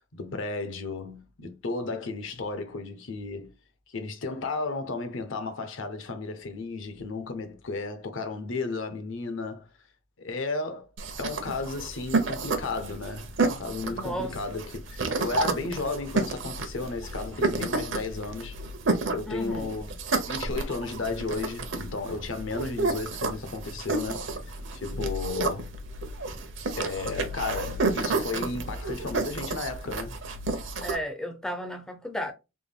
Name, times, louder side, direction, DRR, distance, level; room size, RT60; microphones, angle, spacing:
voice 1, 0.1-3.5 3.9-9.7 10.2-10.9 11.2-18.6 19.1-19.9 20.3-24.3 24.7-25.7 26.8-30.2, left 3 dB, 70° left, 0.7 m, -34 dB
sound 1, 11.0-31.0, right 3 dB, 65° right, 0.7 m, -31 dB
voice 2, 13.9-14.4 19.3-19.8 30.8-32.3, equal, 5° left, 0.4 m, -34 dB
3.6 x 2.2 x 3.4 m
head